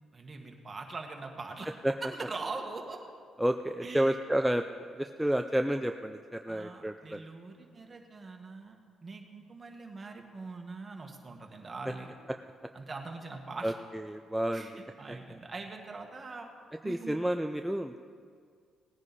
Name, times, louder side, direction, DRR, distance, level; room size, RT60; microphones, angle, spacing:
voice 1, 0.1-1.7 2.0-3.0 3.8-4.1 6.5-12.1 12.7-13.7 14.5-16.5 16.8-17.2, right 3 dB, 30° right, 2 dB, 1.7 m, -42 dB
voice 2, 3.4-4.6 5.0-7.2 13.6-14.7 15.1-15.2 16.8-18.0, right 1 dB, 5° right, 6 dB, 0.4 m, -30 dB
18.0 x 9.8 x 4.2 m, 2.1 s
cardioid pair, 90°, 0 cm